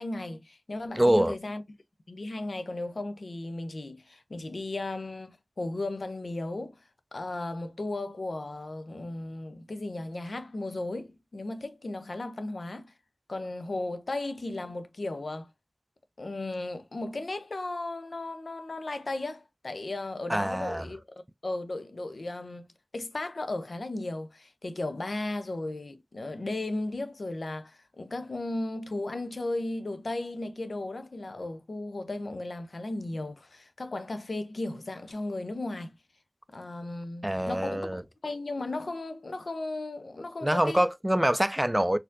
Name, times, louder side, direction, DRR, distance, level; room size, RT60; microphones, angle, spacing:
voice 1, 0.0-1.6 2.1-6.8 7.1-12.9 13.3-15.5 16.2-22.7 22.9-35.9 36.5-40.9, left 2 dB, 75° left, 0.5 m, -35 dB
voice 2, 0.9-1.3 20.3-20.8 37.2-38.0 40.4-42.0, right 1 dB, 15° right, 0.3 m, -25 dB
4.2 x 2.7 x 2.4 m
wide cardioid pair, 45°, 0 cm